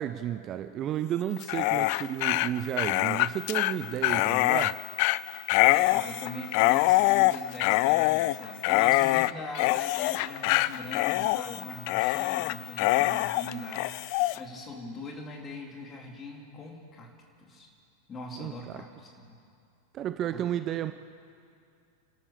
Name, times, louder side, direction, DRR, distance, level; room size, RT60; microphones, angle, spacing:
voice 1, 0.0-4.8 18.4-18.8 19.9-20.9, right 11 dB, 30° right, 11 dB, 0.6 m, -32 dB
Dog, 1.4-14.4, left 18 dB, 45° left, 0.4 m, -25 dB
voice 2, 5.6-17.1 17.4-17.7 18.1-19.4 20.3-20.6, left 1 dB, 25° left, 0 dB, 3.8 m, -41 dB
29.5 x 13.0 x 6.9 m, 2.4 s
figure-of-eight pair, 90°, 0 cm